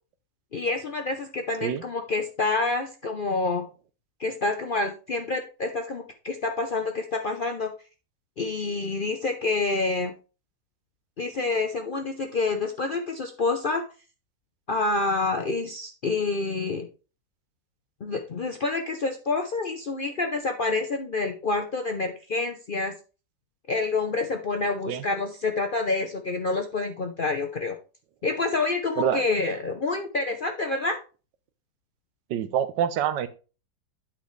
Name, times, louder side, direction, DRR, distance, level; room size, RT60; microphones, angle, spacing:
voice 1, 0.5-3.6 4.2-7.7 8.4-10.1 11.2-13.8 14.7-16.9 18.0-22.9 23.7-27.8 28.2-31.0, left 3 dB, 80° left, 4 dB, 0.4 m, -27 dB
voice 2, 32.3-33.3, right 9 dB, 80° right, 12 dB, 1.4 m, -26 dB
8.6 x 5.9 x 3.2 m, 0.34 s
omnidirectional pair, 1.9 m